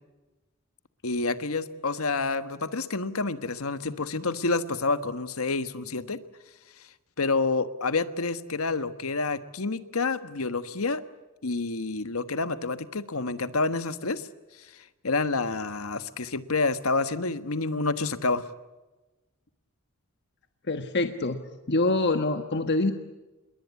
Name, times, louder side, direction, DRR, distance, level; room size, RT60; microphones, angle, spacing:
voice 1, 1.0-6.2 7.2-11.0 11.4-14.3 15.0-18.4, left 3 dB, 85° left, 12 dB, 1.4 m, -28 dB
voice 2, 20.7-21.4 21.7-22.9, left 2 dB, 55° left, 7 dB, 1.4 m, -25 dB
28.0 x 22.0 x 8.4 m, 1.1 s
head